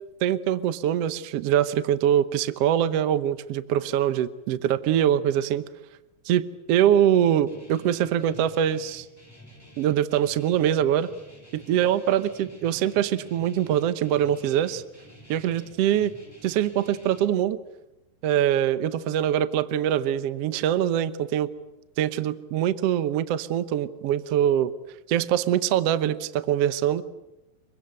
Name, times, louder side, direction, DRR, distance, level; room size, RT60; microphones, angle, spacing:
voice 1, 0.2-5.6 6.2-9.1 9.8-11.1 11.5-14.8 15.3-16.1 16.4-17.6 18.2-21.5 22.0-24.7 25.1-27.0, right 10 dB, 75° right, 14 dB, 1.4 m, -23 dB
Guitar, 7.5-17.2, equal, 5° left, 4.8 m, -50 dB
26.5 x 23.0 x 7.8 m, 0.96 s
omnidirectional pair, 4.2 m